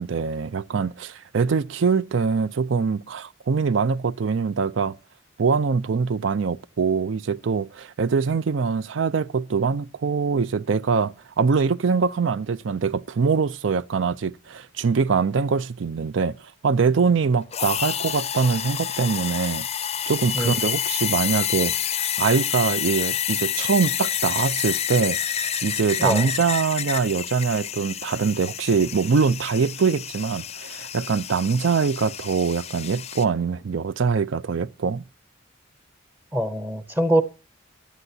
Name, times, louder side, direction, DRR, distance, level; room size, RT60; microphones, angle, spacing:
voice 1, 0.0-5.0 5.4-16.4 16.6-19.7 20.1-21.7 22.2-25.2 25.6-35.0, right 5 dB, 70° right, 0.5 m, -23 dB
sound 1, 17.5-33.2, left 9 dB, 30° left, 0.5 m, -28 dB
voice 2, 36.3-37.2, right 1 dB, 10° right, 0.7 m, -23 dB
16.0 x 11.0 x 2.7 m
head